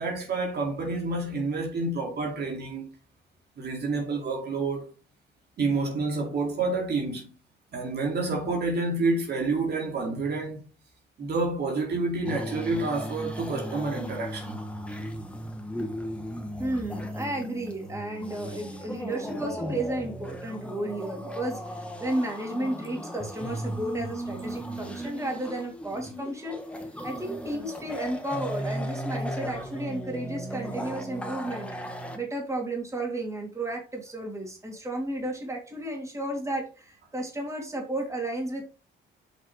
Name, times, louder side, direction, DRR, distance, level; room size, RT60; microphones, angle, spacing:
voice 1, 0.0-2.9 3.6-4.9 5.6-7.3 7.7-10.6 11.2-14.6, right 3 dB, 55° right, 2.4 m, -29 dB
sound 1, 12.2-32.2, equal, 5° left, 1.6 m, -36 dB
voice 2, 16.6-26.6 27.0-31.7 32.1-38.6, right 1 dB, 15° right, 3.0 m, -33 dB
7.7 x 5.7 x 3.3 m
cardioid pair, 90°, 20 cm